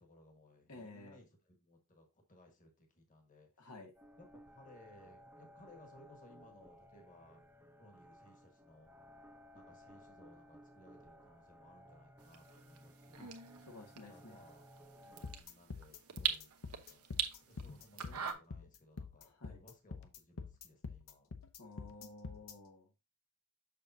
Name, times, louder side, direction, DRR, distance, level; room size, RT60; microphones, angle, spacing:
voice 1, 0.0-3.7 4.2-7.4 7.8-8.9 9.5-13.3 14.0-14.7 15.0-17.1 17.4-21.3, left 1 dB, 35° left, 3 dB, 1.5 m, -62 dB
voice 2, 0.7-1.2 3.6-3.9 13.1-13.3 13.6-14.4 19.2-19.6 21.6-22.9, left 2 dB, 80° left, 2 dB, 1.4 m, -53 dB
sound 1, 3.9-15.4, equal, 10° right, 0.5 m, -59 dB
sound 2, 12.2-18.3, right 9 dB, 80° right, 0.9 m, -43 dB
sound 3, 15.2-22.5, left 4 dB, 60° left, 0.7 m, -47 dB
6.7 x 6.1 x 2.7 m, 0.26 s
head